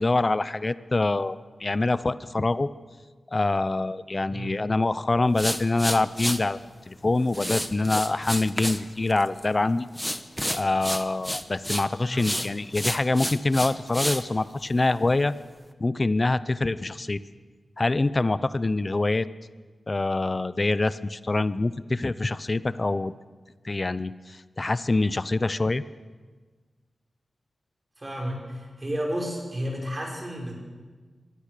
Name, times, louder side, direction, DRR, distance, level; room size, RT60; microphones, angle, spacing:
voice 1, 0.0-2.7 3.3-6.6 6.9-9.9 10.5-15.3 15.8-17.2 17.8-19.3 19.9-23.1 23.6-25.8, left 2 dB, 30° left, 15 dB, 0.6 m, -25 dB
sound 1, 5.3-6.4 7.3-8.8 9.1-9.5 9.9-11.9 12.2-14.2, equal, 5° left, 1.1 m, -30 dB
voice 2, 28.0-30.5, equal, 25° right, 0 dB, 6.1 m, -32 dB
25.0 x 22.0 x 6.8 m, 1.4 s
wide cardioid pair, 150°, 0 cm